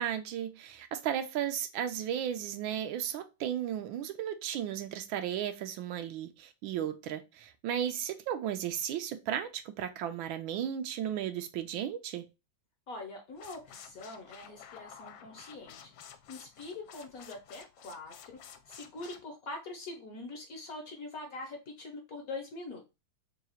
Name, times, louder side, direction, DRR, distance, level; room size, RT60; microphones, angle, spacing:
voice 1, 0.0-12.3, right 10 dB, 85° right, 1.4 m, -35 dB
voice 2, 12.9-22.9, left 2 dB, 55° left, 1.1 m, -44 dB
sound 1, 13.3-19.2, left 8 dB, 80° left, 1.3 m, -52 dB
3.8 x 2.4 x 4.2 m
omnidirectional pair, 2.2 m